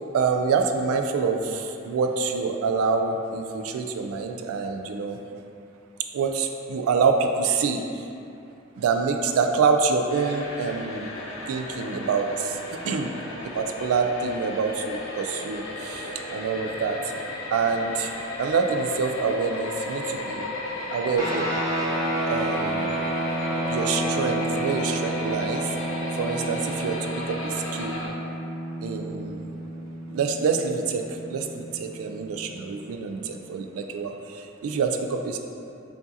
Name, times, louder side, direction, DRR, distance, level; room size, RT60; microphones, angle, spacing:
voice 1, 0.1-5.2 6.1-7.8 8.8-11.1 11.5-13.1 13.5-17.0 17.5-18.1 18.4-20.4 20.9-21.5 22.2-23.0 23.7-25.8 26.1-28.0 28.8-29.5 30.1-35.4, right 5 dB, 90° right, 6 dB, 0.3 m, -26 dB
sound 1, 10.1-28.1, left 1 dB, 75° left, 0.6 m, -35 dB
sound 2, 21.2-32.9, right 1 dB, 15° right, 0.6 m, -30 dB
4.7 x 2.6 x 2.6 m, 2.7 s
head